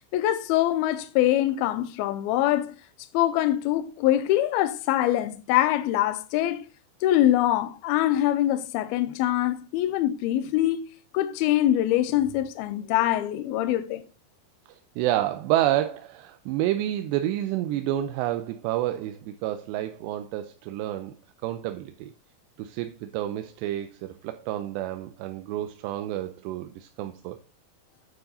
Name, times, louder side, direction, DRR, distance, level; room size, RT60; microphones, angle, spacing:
voice 1, 0.1-2.8 3.1-6.6 7.0-10.8 11.1-14.0, left 13 dB, 75° left, 2.5 m, -24 dB
voice 2, 14.7-21.2 21.4-22.1 22.6-27.4, right 13 dB, 90° right, 2.8 m, -29 dB
9.4 x 6.5 x 4.1 m
omnidirectional pair, 4.9 m